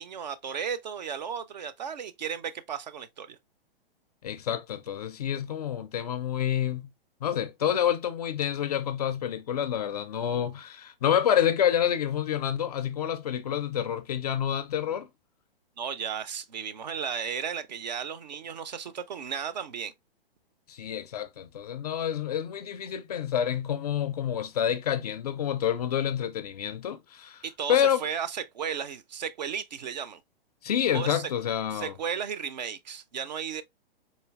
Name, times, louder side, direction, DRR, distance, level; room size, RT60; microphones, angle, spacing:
voice 1, 0.0-3.4 15.8-19.9 27.4-30.2 30.9-31.2 31.7-33.6, right 7 dB, 45° right, 0.4 m, -34 dB
voice 2, 4.2-6.9 7.2-15.1 20.7-27.4 27.7-28.0 30.6-32.0, left 9 dB, 40° left, 0.4 m, -28 dB
4.1 x 2.7 x 2.2 m
figure-of-eight pair, 115°, 30 cm